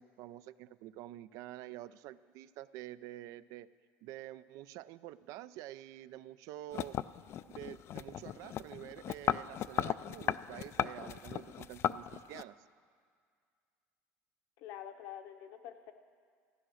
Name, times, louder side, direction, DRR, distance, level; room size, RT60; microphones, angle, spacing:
voice 1, 0.0-3.7 4.0-7.0 7.5-12.6, right 14 dB, 70° right, 16 dB, 0.4 m, -48 dB
sound 1, 6.7-12.4, left 11 dB, 50° left, 0.3 m, -36 dB
voice 2, 14.6-15.9, left 10 dB, 75° left, 7 dB, 1.0 m, -47 dB
14.5 x 10.0 x 6.3 m, 2.1 s
supercardioid pair, 105°, 6 cm